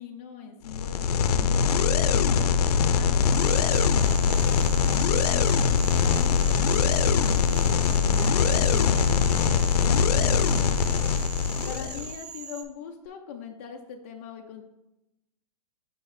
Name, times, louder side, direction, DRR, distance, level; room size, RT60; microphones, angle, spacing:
voice 1, 0.0-2.4 2.9-7.0 11.6-14.6, left 7 dB, 20° left, 2 dB, 0.3 m, -41 dB
sound 1, 0.7-12.1, left 6 dB, 75° left, 0.5 m, -22 dB
voice 2, 2.7-3.4 7.5-10.9, right 1 dB, 55° right, -7 dB, 1.9 m, -42 dB
Cricket / Frog, 3.3-12.6, right 6 dB, 80° right, 0.9 m, -41 dB
6.6 x 5.4 x 3.1 m, 0.92 s
hypercardioid pair, 170°, 20 cm